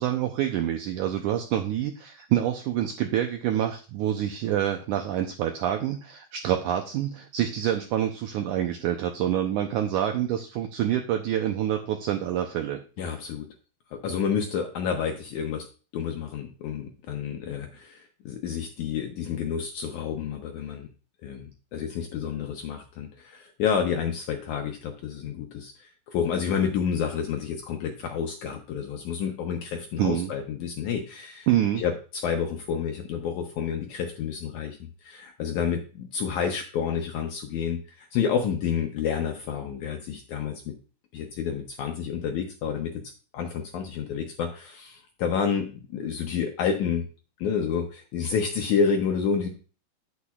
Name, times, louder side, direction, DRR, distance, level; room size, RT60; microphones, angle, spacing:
voice 1, 0.0-12.8 30.0-30.3 31.5-31.8, right 11 dB, 85° right, 5 dB, 1.7 m, -27 dB
voice 2, 13.0-13.5 13.9-15.7 15.9-20.9 21.2-31.5 31.8-40.7 41.1-43.0 43.3-47.1 47.4-49.5, left 7 dB, 75° left, 4 dB, 1.8 m, -29 dB
8.7 x 8.5 x 2.3 m, 0.36 s
omnidirectional pair, 4.3 m